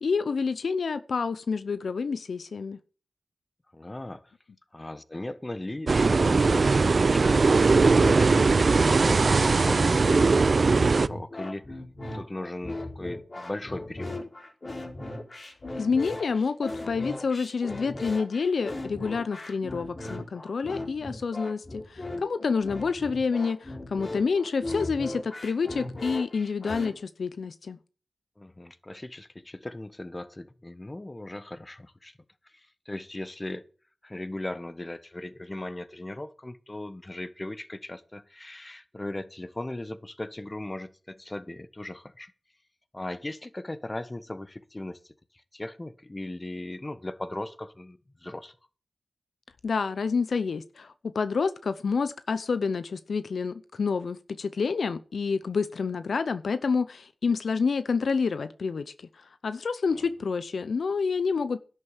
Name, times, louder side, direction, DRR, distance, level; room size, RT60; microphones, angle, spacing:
voice 1, 0.0-2.8 15.8-27.8 49.6-61.6, left 5 dB, 75° left, 0.6 m, -28 dB
voice 2, 3.7-4.3 4.7-8.9 9.3-11.8 12.1-14.2 28.4-32.1 32.5-33.6 34.0-42.3 42.9-45.0 45.5-48.5 59.9-60.0, left 1 dB, 25° left, 1.3 m, -38 dB
sound 1, 5.9-11.1, right 4 dB, 60° right, 0.5 m, -20 dB
sound 2, 8.8-26.9, left 2 dB, 50° left, 3.9 m, -37 dB
11.0 x 8.3 x 7.2 m
cardioid pair, 45°, 0 cm